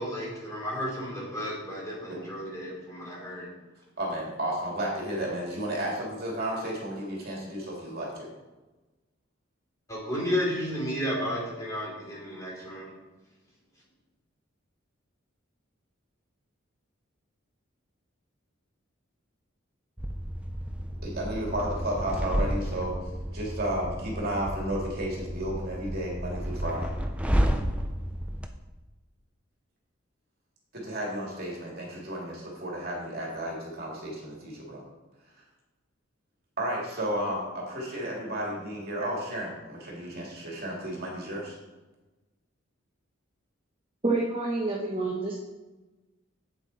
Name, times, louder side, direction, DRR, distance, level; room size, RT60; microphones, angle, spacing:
voice 1, 0.0-3.5 9.9-12.9, equal, 15° left, -5 dB, 2.9 m, -32 dB
voice 2, 4.0-8.3 21.0-22.9 23.3-26.9 30.7-34.8 36.6-41.5, right 1 dB, 50° right, -3 dB, 2.7 m, -33 dB
sound 1, 20.0-28.5, equal, 5° right, 0.5 m, -31 dB
voice 3, 44.0-45.3, right 2 dB, 25° right, -4 dB, 1.1 m, -28 dB
8.4 x 7.9 x 4.2 m, 1.1 s
head